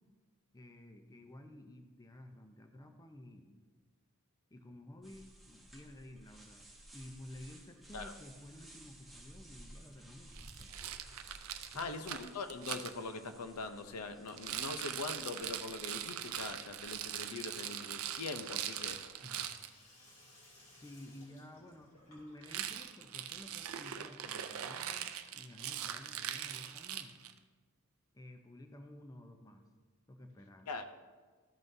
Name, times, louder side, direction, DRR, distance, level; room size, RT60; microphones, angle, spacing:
voice 1, 0.5-3.6 4.5-10.7 11.7-12.2 19.2-19.6 20.7-27.1 28.1-29.6 30.1-30.7, left 1 dB, 15° left, 5 dB, 0.6 m, -53 dB
sound 1, 5.0-17.6, right 1 dB, ahead, 1.1 m, -57 dB
Rattle, 10.3-12.9 14.3-19.7 22.4-27.4, right 10 dB, 65° right, 0.5 m, -41 dB
voice 2, 11.7-19.0 30.7-30.9, left 3 dB, 85° left, 8 dB, 0.6 m, -42 dB
Sink (filling or washing), 18.2-24.9, left 1 dB, 65° left, 2.6 m, -64 dB
13.5 x 5.6 x 2.7 m, 1.4 s
head